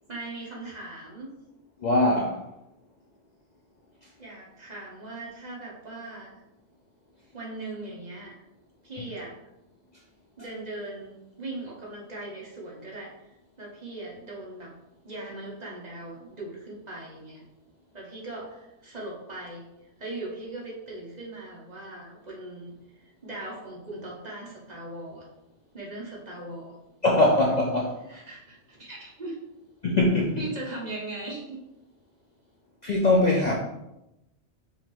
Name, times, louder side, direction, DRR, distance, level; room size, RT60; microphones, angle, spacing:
voice 1, 0.1-1.3 4.2-6.3 7.3-8.4 8.8-9.3 10.4-14.7 15.0-17.4 17.9-19.6 20.0-22.7 23.0-25.3 25.7-26.8 28.1-29.4 30.4-31.6, right 2 dB, 40° right, -4 dB, 1.1 m, -39 dB
voice 2, 1.8-2.4 27.0-27.9 29.8-30.4 32.8-33.5, left 2 dB, 45° left, -3 dB, 0.6 m, -21 dB
5.4 x 2.9 x 3.0 m, 0.89 s
omnidirectional pair, 1.2 m